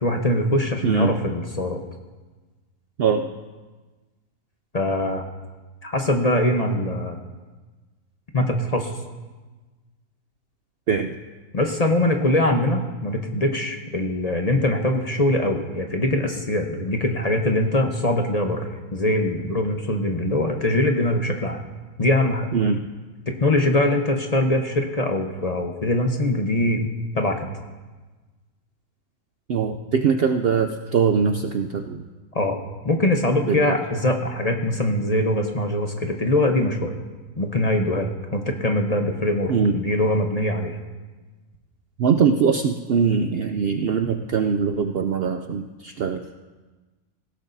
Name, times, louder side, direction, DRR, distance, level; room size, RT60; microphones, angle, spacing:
voice 1, 0.0-1.8 4.7-5.2 5.8-7.2 8.3-8.9 11.5-21.6 22.0-22.5 23.3-26.9 27.1-27.5 32.3-32.6 32.8-36.9 37.4-40.8, left 1 dB, 30° left, 3 dB, 0.9 m, -22 dB
voice 2, 0.8-1.2 3.0-3.3 10.9-11.2 22.5-22.8 29.5-32.0 33.5-33.8 39.5-39.8 42.0-46.2, right 6 dB, 60° right, 6 dB, 0.6 m, -22 dB
18.0 x 16.0 x 2.7 m, 1.3 s
omnidirectional pair, 1.5 m